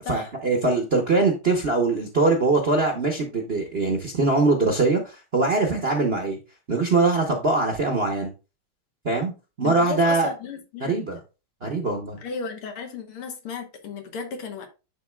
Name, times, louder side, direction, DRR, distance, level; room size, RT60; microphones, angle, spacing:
voice 1, 0.1-6.4 6.7-8.3 9.0-9.3 9.6-10.3 10.8-11.2 11.6-12.2, right 3 dB, 45° right, 2 dB, 0.8 m, -22 dB
voice 2, 9.6-11.0 12.2-14.7, left 6 dB, 85° left, 5 dB, 2.2 m, -34 dB
10.5 x 4.0 x 2.3 m, 0.30 s
omnidirectional pair, 2.4 m